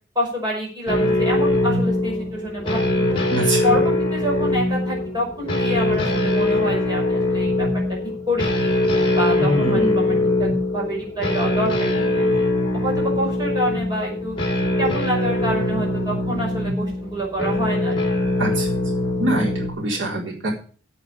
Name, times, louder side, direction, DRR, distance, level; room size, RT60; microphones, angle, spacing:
voice 1, 0.1-3.2 3.6-7.8 8.3-8.7 9.2-12.4 12.7-14.3 14.8-18.0, equal, 20° right, -2 dB, 5.7 m, -27 dB
sound 1, 0.9-19.7, left 1 dB, 25° left, 2.9 m, -22 dB
voice 2, 3.3-3.8 9.4-10.3 18.4-18.7 19.2-20.5, right 1 dB, 85° right, -2 dB, 4.0 m, -24 dB
8.7 x 8.2 x 8.7 m, 0.40 s
head